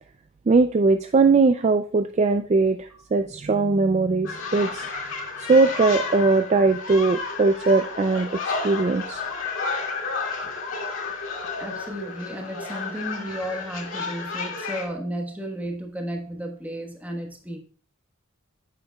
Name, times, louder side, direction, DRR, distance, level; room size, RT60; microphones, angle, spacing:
voice 1, 0.5-4.9 5.4-9.2, right 3 dB, 30° right, 8 dB, 0.3 m, -20 dB
sound 1, 4.2-14.9, left 4 dB, 65° left, 2.1 m, -32 dB
voice 2, 11.6-17.6, equal, 5° right, 2 dB, 1.3 m, -33 dB
9.6 x 7.8 x 2.3 m, 0.41 s
head